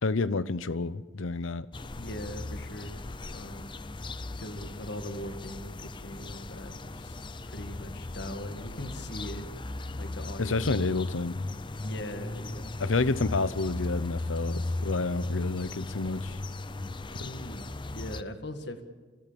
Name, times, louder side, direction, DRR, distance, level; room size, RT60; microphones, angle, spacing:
voice 1, 0.0-1.7 10.4-11.4 12.8-16.4 17.1-17.3, left 3 dB, 85° left, 17 dB, 0.8 m, -29 dB
sound 1, 1.7-18.2, left 2 dB, 25° left, 0.6 m, -37 dB
voice 2, 2.0-3.0 3.3-3.8 4.4-7.2 7.5-9.5 10.0-10.7 11.8-12.7 17.3-18.8, left 1 dB, 60° left, 8 dB, 2.0 m, -40 dB
28.0 x 16.5 x 7.0 m, 1.4 s
head